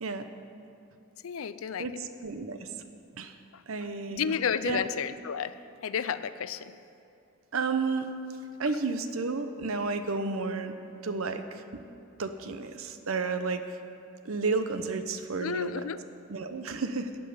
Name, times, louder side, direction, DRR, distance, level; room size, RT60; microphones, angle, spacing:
voice 1, 1.2-1.9 4.1-5.5 5.8-6.7 15.4-16.0, left 7 dB, 75° left, 14 dB, 0.5 m, -31 dB
voice 2, 1.8-2.7 3.1-3.3 3.7-4.3 4.6-4.9 7.5-8.1 8.6-10.7 11.0-11.8 12.2-13.6 14.2-15.8 16.3-17.1, right 4 dB, 75° right, 9 dB, 0.8 m, -32 dB
14.5 x 5.4 x 9.5 m, 2.6 s
head